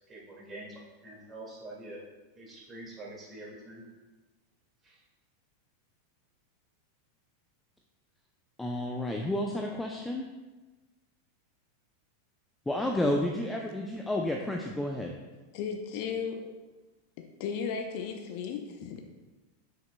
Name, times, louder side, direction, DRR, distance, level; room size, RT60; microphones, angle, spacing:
voice 1, 0.1-2.0 2.3-3.8 4.8-5.0, right 2 dB, 20° right, -3 dB, 2.1 m, -45 dB
voice 2, 8.6-10.3 12.7-15.1, left 1 dB, 5° left, 1 dB, 0.5 m, -31 dB
voice 3, 15.5-16.5 17.2-19.0, left 6 dB, 50° left, 5 dB, 0.6 m, -35 dB
7.7 x 6.6 x 2.2 m, 1.2 s
figure-of-eight pair, 90°, 0 cm